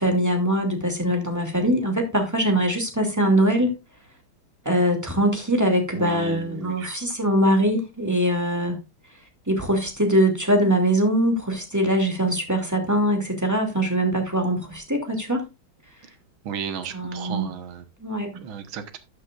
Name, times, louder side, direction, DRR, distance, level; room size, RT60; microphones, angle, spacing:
voice 1, 0.0-3.7 4.6-8.8 9.5-15.4 16.9-17.5 18.0-18.3, right 1 dB, 10° right, 2.4 m, -22 dB
voice 2, 6.0-6.9 16.4-17.8 18.3-19.0, right 7 dB, 80° right, 2.0 m, -34 dB
13.5 x 8.4 x 2.5 m
omnidirectional pair, 2.2 m